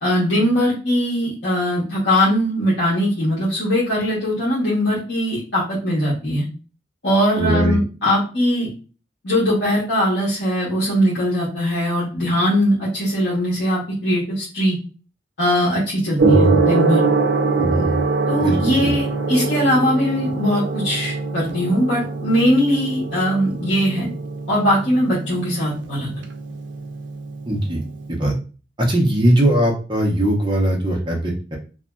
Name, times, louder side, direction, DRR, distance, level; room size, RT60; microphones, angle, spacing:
voice 1, 0.0-6.5 7.0-8.7 9.2-14.8 15.4-17.0 18.3-24.1 24.5-26.1, equal, 70° left, -7 dB, 0.9 m, -20 dB
voice 2, 7.4-7.8 16.2-16.6 17.6-18.0 18.4-18.6 18.8-18.9 27.5-27.8 28.2-28.3 28.9-31.6, right 1 dB, 25° right, -1 dB, 0.7 m, -19 dB
Gong, 16.2-28.2, right 4 dB, 85° right, 0.4 m, -24 dB
2.6 x 2.6 x 2.2 m, 0.35 s
head